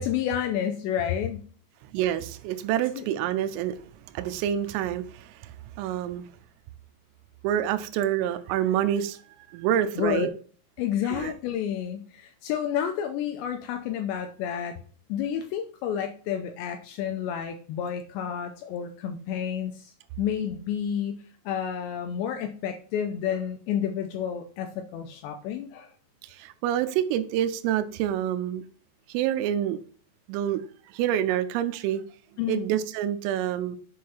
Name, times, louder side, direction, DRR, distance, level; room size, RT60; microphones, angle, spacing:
voice 1, 0.0-1.4 3.0-3.1 10.0-10.3 10.8-14.8 15.1-25.9 32.4-32.6, left 9 dB, 90° left, 6 dB, 2.6 m, -30 dB
voice 2, 1.8-3.8 4.1-5.5 5.8-6.3 7.4-9.2 9.5-10.3 11.1-11.3 26.2-28.6 29.1-29.8 30.3-30.6 30.9-32.0 32.5-33.8, right 11 dB, 85° right, 9 dB, 3.3 m, -27 dB
7.5 x 4.7 x 5.5 m, 0.42 s
omnidirectional pair, 5.7 m